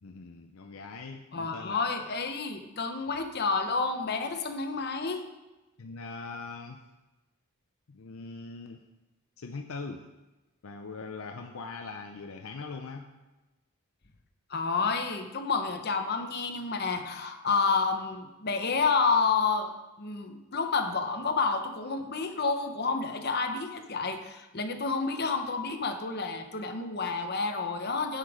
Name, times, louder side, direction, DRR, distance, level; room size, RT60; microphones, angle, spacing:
voice 1, 0.0-1.8 5.8-6.8 7.9-8.8 9.4-10.0 10.6-13.1, left 4 dB, 65° left, 4 dB, 0.6 m, -41 dB
voice 2, 1.3-5.2 14.5-19.7 20.0-28.2, left 4 dB, 45° left, 6 dB, 0.9 m, -29 dB
9.5 x 8.2 x 4.9 m, 1.1 s
head